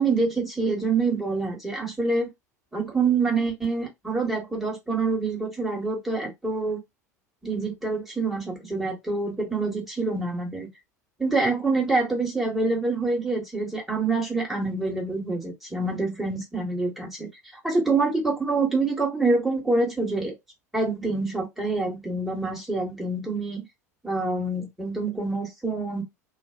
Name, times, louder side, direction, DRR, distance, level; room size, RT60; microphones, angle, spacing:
voice 1, 0.0-2.3 2.7-6.8 7.4-10.7 11.2-17.3 17.6-20.3 20.7-23.6 24.0-26.0, right 3 dB, ahead, 1.4 m, -26 dB
2.6 x 2.0 x 2.5 m
figure-of-eight pair, 75°, 9 cm